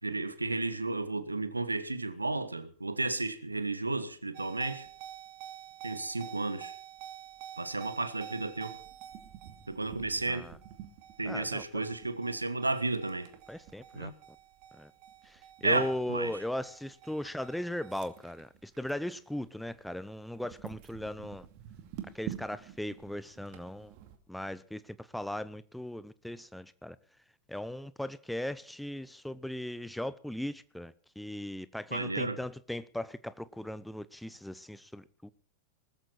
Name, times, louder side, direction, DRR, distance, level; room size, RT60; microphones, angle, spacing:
voice 1, 0.0-4.9 5.8-6.7 7.6-8.8 9.7-10.4 11.2-13.3 13.9-14.1 15.6-16.3 31.9-32.4, right 2 dB, 80° right, 1.4 m, -32 dB
sound 1, 4.3-19.1 19.5-19.8 20.3-24.2, right 11 dB, 45° right, 2.4 m, -48 dB
voice 2, 10.3-10.6 11.2-11.9 13.5-14.1 14.7-14.9 15.2-21.5 22.1-23.9 24.3-27.0 27.5-35.3, left 1 dB, ahead, 0.7 m, -38 dB
20.0 x 14.0 x 4.3 m
figure-of-eight pair, 90°, 0 cm